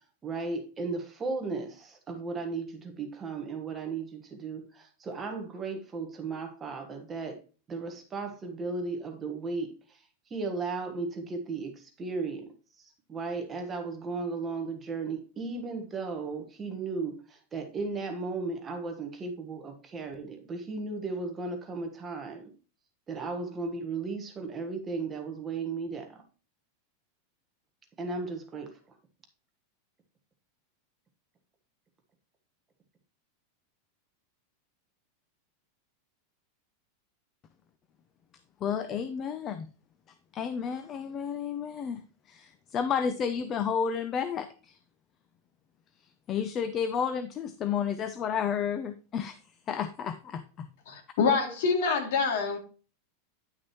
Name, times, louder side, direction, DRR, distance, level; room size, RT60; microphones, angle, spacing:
voice 1, 0.2-7.4 7.7-9.7 10.3-12.4 12.8-22.5 23.1-26.2 28.0-28.7, right 4 dB, 15° right, 1.3 m, -35 dB
voice 2, 38.6-39.7 40.3-42.0 42.3-44.8 46.3-49.4 49.7-50.7, left 7 dB, 25° left, 0.6 m, -31 dB
voice 3, 50.9-52.6, left 5 dB, 65° left, 2.7 m, -26 dB
10.5 x 6.1 x 3.0 m
supercardioid pair, 160°, 0 cm